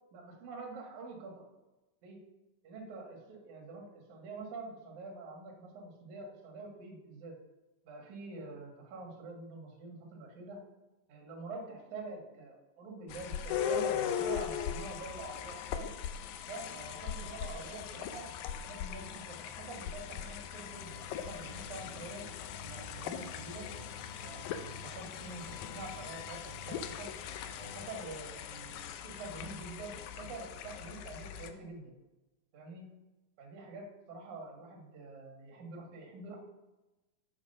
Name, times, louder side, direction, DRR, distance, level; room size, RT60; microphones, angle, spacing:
voice 1, 0.1-1.4 2.0-2.2 2.6-7.4 7.8-10.6 11.1-15.9 16.5-18.3 18.7-22.2 22.6-23.7 24.2-27.1 27.5-31.9 32.5-32.9 33.4-36.4, right 3 dB, 60° right, 0 dB, 2.9 m, -46 dB
sound 1, 13.1-31.5, left 9 dB, 85° left, 1.6 m, -40 dB
sound 2, 20.7-28.1, left 2 dB, 60° left, 1.9 m, -52 dB
7.3 x 7.3 x 5.4 m, 1.1 s
omnidirectional pair, 4.1 m